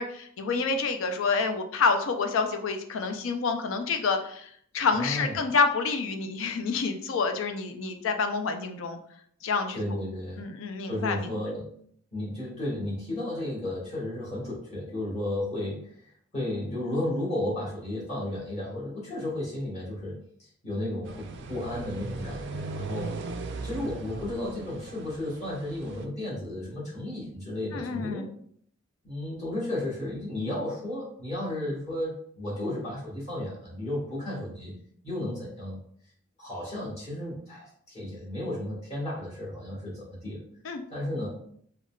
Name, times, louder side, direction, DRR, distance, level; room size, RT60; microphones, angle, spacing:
voice 1, 0.0-9.0 9.4-9.8 10.4-11.3 27.7-28.3 40.6-40.8, left 4 dB, 70° left, 6 dB, 0.4 m, -28 dB
voice 2, 4.9-5.4 9.7-10.4 10.9-11.7 12.1-23.2 23.6-28.2 29.0-34.7 35.0-35.8 36.4-40.4 40.9-41.3, left 1 dB, 35° left, -6 dB, 1.3 m, -33 dB
sound 1, 21.0-26.0, right 3 dB, 60° right, 0.3 m, -38 dB
3.6 x 2.2 x 2.2 m, 0.63 s
head